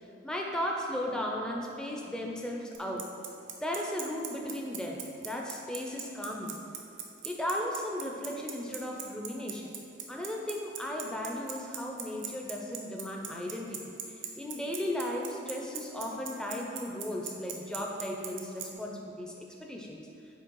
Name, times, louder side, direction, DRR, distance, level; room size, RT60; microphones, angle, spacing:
voice 1, 0.2-3.1 3.6-6.6 7.2-9.7 10.1-13.8 14.1-19.3 19.6-20.1, left 1 dB, 5° left, -1 dB, 0.5 m, -36 dB
Bicycle, 2.7-18.7, right 10 dB, 85° right, 0.7 m, -38 dB
8.2 x 3.3 x 4.5 m, 2.7 s
head